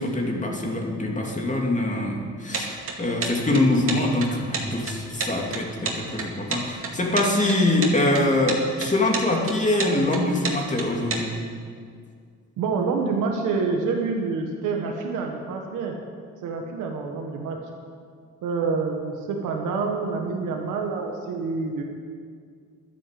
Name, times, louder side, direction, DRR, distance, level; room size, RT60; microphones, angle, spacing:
voice 1, 0.0-11.4, left 1 dB, 25° left, 0 dB, 2.7 m, -24 dB
sound 1, 2.5-11.2, right 4 dB, 45° right, 2.4 m, -30 dB
voice 2, 12.6-16.0 16.4-17.6 18.4-21.8, right 4 dB, 90° right, 2 dB, 1.5 m, -27 dB
12.0 x 10.0 x 7.6 m, 2.1 s
cardioid pair, 90°, 30 cm